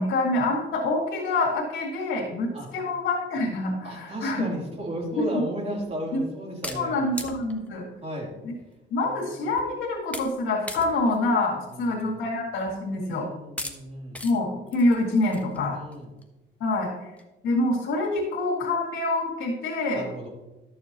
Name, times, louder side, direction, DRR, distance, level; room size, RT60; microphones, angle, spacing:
voice 1, 0.0-4.5 5.2-5.3 6.1-6.2 6.7-7.9 8.4-8.5 8.9-13.3 14.2-15.8 16.6-16.9 17.4-20.1, left 2 dB, 80° left, -6 dB, 2.0 m, -26 dB
voice 2, 3.8-7.3 8.0-8.3 9.0-9.3 11.7-12.1 12.9-14.2 15.7-16.1 19.9-20.3, equal, 30° right, -2 dB, 3.2 m, -35 dB
sound 1, 5.8-5.9 6.6-7.8 8.6-8.7 9.0-9.1 9.6-9.8 10.1-10.4 10.7-11.2 11.6-11.8 12.7-12.8 13.6-13.8 14.1-14.3 14.7-16.2 16.7-16.8 17.2-17.3 17.5-17.6 17.9-18.2, left 1 dB, 5° left, 1.1 m, -38 dB
12.5 x 7.0 x 2.9 m, 1.0 s
cardioid pair, 90°, 20 cm